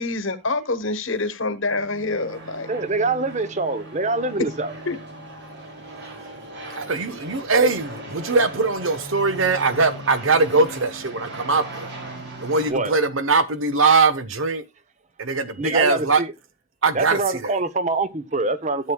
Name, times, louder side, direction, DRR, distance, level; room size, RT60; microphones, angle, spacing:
voice 1, 0.0-2.7 4.4-4.5 4.9-5.0, left 3 dB, 70° left, 1.1 m, -26 dB
sound 1, 1.7-12.7, right 1 dB, 55° right, 2.8 m, -38 dB
voice 2, 2.7-4.7 12.7-12.9 15.6-16.3 16.9-18.9, right 3 dB, 35° right, 0.8 m, -24 dB
voice 3, 6.7-11.9 12.4-14.6 15.2-16.2 16.8-17.5, right 4 dB, 75° right, 1.1 m, -21 dB
13.5 x 7.7 x 2.3 m
head